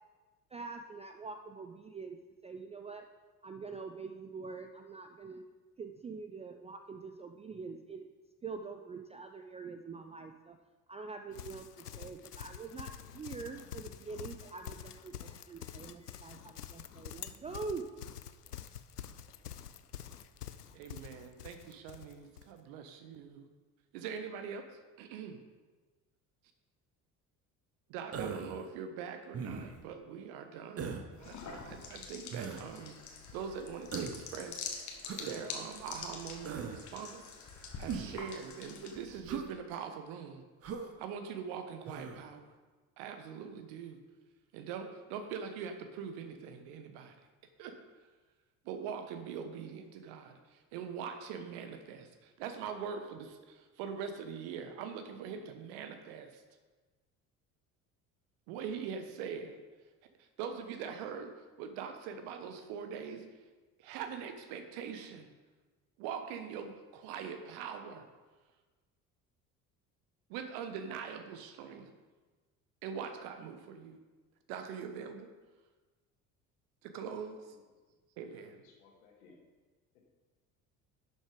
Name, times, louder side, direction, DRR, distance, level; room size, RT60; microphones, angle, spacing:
voice 1, 0.5-3.1 3.4-5.4 5.8-8.1 8.4-10.6 10.9-17.9, right 4 dB, 15° right, 6 dB, 0.4 m, -44 dB
Livestock farm animals working animals, 11.3-22.5, left 9 dB, 85° left, 0.5 m, -47 dB
voice 2, 20.7-23.5 23.9-24.7 25.0-25.4 27.9-33.0 33.3-34.7 35.2-40.4 41.0-42.5 43.0-44.0 44.5-47.1 47.6-47.8 48.6-56.4 58.5-59.6 60.2-63.2 63.8-65.3 66.0-68.1 70.3-71.9 72.8-74.0 74.5-75.3 76.8-77.6 78.2-78.6, right 7 dB, 55° right, 7 dB, 1.2 m, -43 dB
Human voice, 28.1-28.6 29.3-29.8 30.8-31.1 32.3-32.6 33.9-34.2 35.1-35.4 36.4-36.8 37.9-38.2 39.3-39.5 40.6-40.9 41.9-42.2, right 6 dB, 30° right, 1.0 m, -39 dB
sound 1, 31.1-39.2, left 5 dB, 40° left, 1.8 m, -45 dB
voice 3, 78.3-79.4, left 4 dB, 65° left, 0 dB, 2.2 m, -61 dB
11.5 x 6.8 x 5.1 m, 1.3 s
figure-of-eight pair, 60°, 46 cm